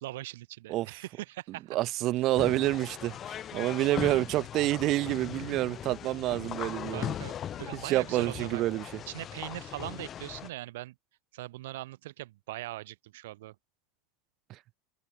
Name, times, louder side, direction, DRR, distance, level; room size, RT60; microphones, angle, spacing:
voice 1, 0.0-1.8 6.9-8.6 9.1-10.9 11.3-13.5, right 17 dB, 75° right, 2.6 m, -41 dB
voice 2, 1.7-7.1 7.8-8.9, right 16 dB, 40° right, 0.4 m, -28 dB
sound 1, 2.3-10.5, left 10 dB, 25° left, 5.2 m, -39 dB
open air
supercardioid pair, 155°, 0 cm